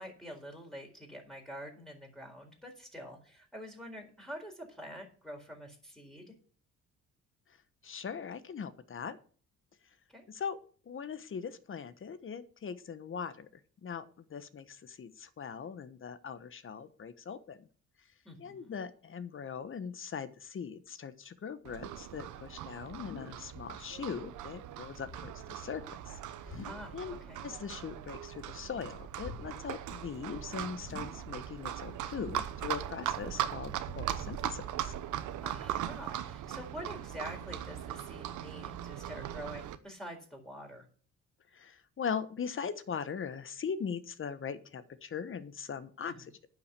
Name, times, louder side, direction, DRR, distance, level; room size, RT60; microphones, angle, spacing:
voice 1, 0.0-6.3 10.1-10.2 18.2-18.7 26.6-27.0 27.3-27.4 35.4-40.8 46.1-46.3, equal, ahead, 1 dB, 4.3 m, -46 dB
voice 2, 7.8-9.2 10.3-10.6 10.9-13.5 13.8-14.0 14.3-17.7 18.4-26.1 26.5-26.7 26.9-27.2 27.4-34.9 41.5-46.1, left 6 dB, 45° left, 13 dB, 1.2 m, -40 dB
Livestock farm animals working animals, 21.6-39.8, right 11 dB, 80° right, 0.9 m, -39 dB
sound 1, 22.6-23.8 24.0-24.4 24.9-25.6 26.3-27.1 27.4-28.4 28.7-29.9 30.2-30.3 30.8-31.6 32.0-33.9, left 5 dB, 60° left, 2.0 m, -50 dB
9.8 x 6.1 x 8.3 m, 0.44 s
cardioid pair, 90°, 30 cm